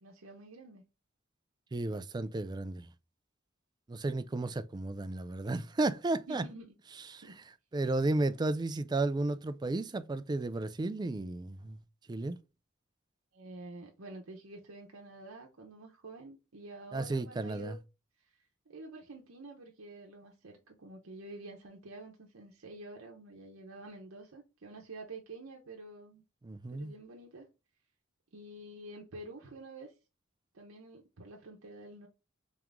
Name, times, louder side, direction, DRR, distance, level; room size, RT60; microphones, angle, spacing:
voice 1, 0.0-0.8 6.3-6.8 7.2-7.4 13.3-17.8 18.7-26.2 26.7-27.5 28.3-29.9 30.5-32.1, right 2 dB, 80° right, 0.8 m, -48 dB
voice 2, 1.7-2.9 3.9-6.4 7.1-7.2 7.7-11.8 12.1-12.4 16.9-17.8 26.4-26.9, right 2 dB, 20° right, 0.3 m, -33 dB
3.6 x 3.0 x 3.5 m
head